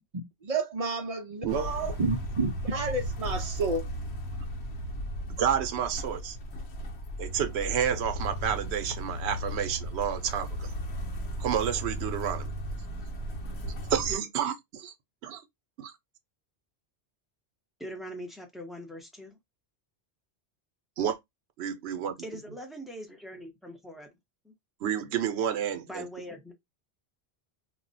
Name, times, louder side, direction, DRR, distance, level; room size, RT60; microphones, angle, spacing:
voice 1, 0.4-3.8, right 3 dB, 45° right, 0.5 m, -30 dB
sound 1, 1.5-14.1, equal, 80° left, 1.0 m, -36 dB
voice 2, 5.3-6.4 7.2-10.7 11.4-12.5 13.9-14.9 15.2-15.4 15.8-15.9 21.0-21.2 21.6-22.1 24.8-26.0, right 8 dB, 80° right, 0.8 m, -30 dB
voice 3, 17.8-19.4 22.2-24.1 24.4-24.5 25.9-26.5, equal, ahead, 0.5 m, -42 dB
2.3 x 2.1 x 3.8 m
omnidirectional pair, 1.1 m